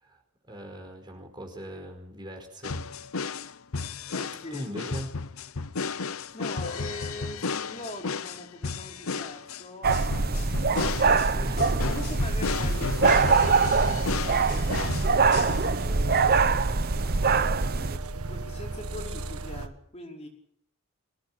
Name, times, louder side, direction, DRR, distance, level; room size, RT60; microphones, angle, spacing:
voice 1, 0.5-3.0 4.5-5.1 5.9-6.0 11.4-11.6 14.3-14.7, equal, 20° right, 2 dB, 5.1 m, -40 dB
sound 1, 2.6-15.7, left 4 dB, 70° left, 0.9 m, -33 dB
voice 2, 4.1-4.7 6.3-13.4 13.8-16.5 17.1-20.3, left 1 dB, 30° left, 0 dB, 5.3 m, -43 dB
sound 2, 9.8-18.0, right 4 dB, 45° right, 0.9 m, -23 dB
sound 3, 14.6-19.7, right 2 dB, 85° right, 1.6 m, -35 dB
25.0 x 17.5 x 8.8 m, 0.71 s
head